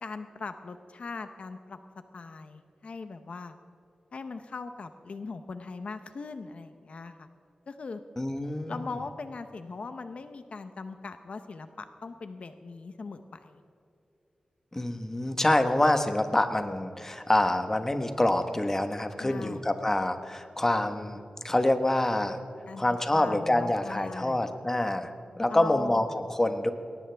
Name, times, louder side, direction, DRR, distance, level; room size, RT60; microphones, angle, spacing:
voice 1, 0.0-1.8 2.1-3.5 4.1-7.3 7.7-8.0 8.7-13.6 19.2-19.6 22.7-22.8 23.1-24.4 25.5-26.0, left 4 dB, 65° left, 9 dB, 0.8 m, -40 dB
voice 2, 8.2-8.9 14.7-21.2 21.4-22.4 22.8-26.7, left 1 dB, 20° left, 7 dB, 1.2 m, -26 dB
21.0 x 18.5 x 3.5 m, 2.7 s
wide cardioid pair, 100°, 2 cm